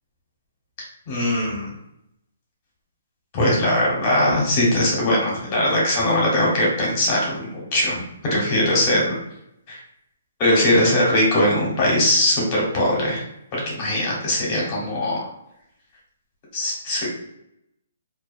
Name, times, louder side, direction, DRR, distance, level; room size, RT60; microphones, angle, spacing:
voice 1, 1.1-1.7 3.3-9.1 9.7-9.8 10.4-13.2 13.5-15.2 16.5-17.1, left 1 dB, 25° left, -3 dB, 0.9 m, -20 dB
2.3 x 2.3 x 2.4 m, 0.80 s
hypercardioid pair, 175°, 0 cm